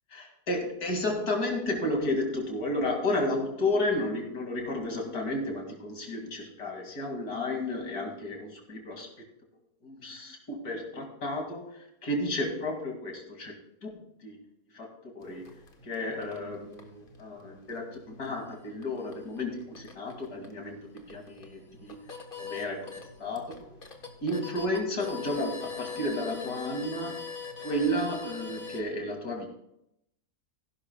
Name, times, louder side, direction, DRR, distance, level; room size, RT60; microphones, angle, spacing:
voice 1, 0.1-9.1 9.8-13.5 13.8-13.9 14.2-14.4 14.7-14.9 15.1-15.5 15.8-20.8 21.1-21.9 22.4-22.9 23.2-23.8 24.2-27.3 27.6-29.5, left 1 dB, 70° left, 1 dB, 3.0 m, -32 dB
sound 1, 15.2-28.8, left 4 dB, 35° left, 1.5 m, -43 dB
16.0 x 11.5 x 2.3 m, 0.78 s
omnidirectional pair, 1.7 m